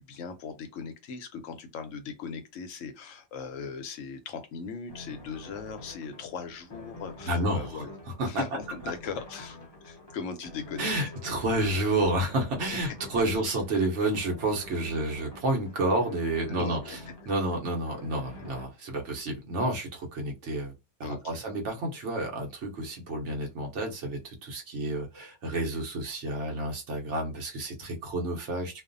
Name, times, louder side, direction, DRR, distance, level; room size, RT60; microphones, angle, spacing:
voice 1, 0.0-7.9 8.2-10.9 16.5-17.0 21.0-21.2, left 5 dB, 70° left, 0.8 m, -39 dB
sound 1, 4.9-18.7, left 2 dB, 35° left, 0.4 m, -47 dB
voice 2, 7.3-7.8 8.2-8.4 10.8-17.0 17.3-20.7 21.0-28.8, right 1 dB, 55° right, 1.0 m, -30 dB
2.5 x 2.3 x 2.5 m
omnidirectional pair, 1.6 m